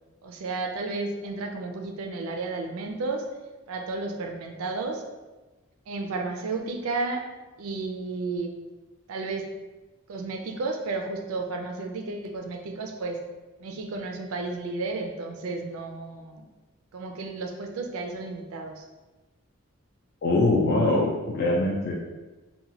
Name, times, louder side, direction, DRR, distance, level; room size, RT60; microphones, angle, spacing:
voice 1, 0.2-3.3 3.7-5.0 5.9-7.3 7.6-8.5 9.1-9.4 10.1-13.2 13.6-16.4 16.9-18.9, right 3 dB, 85° right, 4 dB, 0.4 m, -32 dB
voice 2, 20.2-21.9, left 2 dB, 45° left, -3 dB, 0.3 m, -23 dB
2.9 x 2.1 x 2.7 m, 1.2 s
head